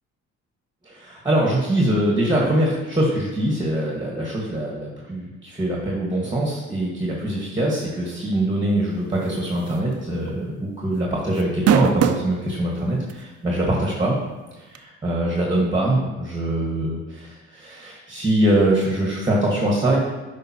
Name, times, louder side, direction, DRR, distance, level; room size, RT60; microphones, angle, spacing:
voice 1, 0.8-14.1 14.7-20.0, right 1 dB, 15° right, -3 dB, 1.5 m, -23 dB
sound 1, 9.7-9.9 10.3-10.4 11.4-12.3 13.1-13.2 14.7-14.8, right 8 dB, 55° right, 0.5 m, -19 dB
8.7 x 5.2 x 2.9 m, 1.2 s
cardioid pair, 90°, 30 cm